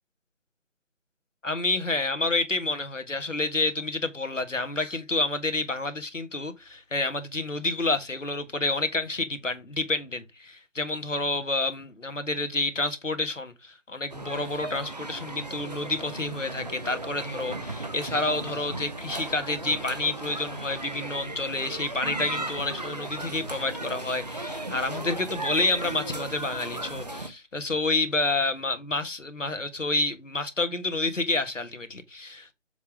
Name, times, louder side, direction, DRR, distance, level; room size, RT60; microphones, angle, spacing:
voice 1, 1.4-32.5, left 2 dB, 80° left, 1.7 m, -29 dB
sound 1, 14.1-27.3, right 2 dB, 35° right, 0.8 m, -36 dB
7.1 x 3.5 x 4.8 m
figure-of-eight pair, 160°, 37 cm